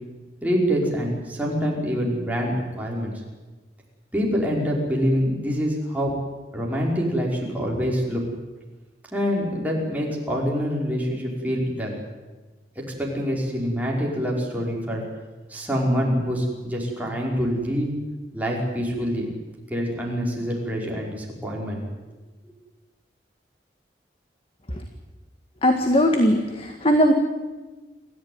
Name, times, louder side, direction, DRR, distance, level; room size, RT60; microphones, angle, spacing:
voice 1, 0.4-3.1 4.1-6.2 6.5-8.2 9.1-12.0 12.8-15.0 15.5-17.9 18.3-19.3 19.7-21.8, equal, 10° right, -3 dB, 5.4 m, -25 dB
voice 2, 25.6-27.1, equal, 35° left, 5 dB, 1.9 m, -19 dB
27.5 x 14.5 x 9.7 m, 1.2 s
head